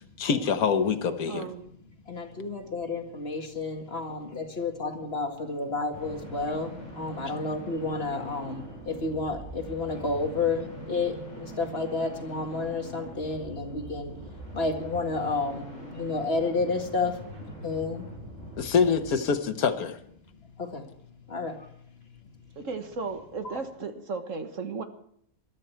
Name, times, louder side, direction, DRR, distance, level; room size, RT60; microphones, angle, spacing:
voice 1, 0.2-1.5 18.6-20.0, left 6 dB, 90° left, 9 dB, 1.6 m, -25 dB
voice 2, 1.1-1.7 22.6-24.8, right 4 dB, 65° right, 7 dB, 1.7 m, -35 dB
voice 3, 2.0-18.1 20.6-22.2 23.4-23.6, left 3 dB, 45° left, 3 dB, 2.1 m, -31 dB
sound 1, 5.9-19.2, right 1 dB, 25° right, 7.7 m, -43 dB
21.5 x 12.5 x 4.5 m, 0.67 s
omnidirectional pair, 1.5 m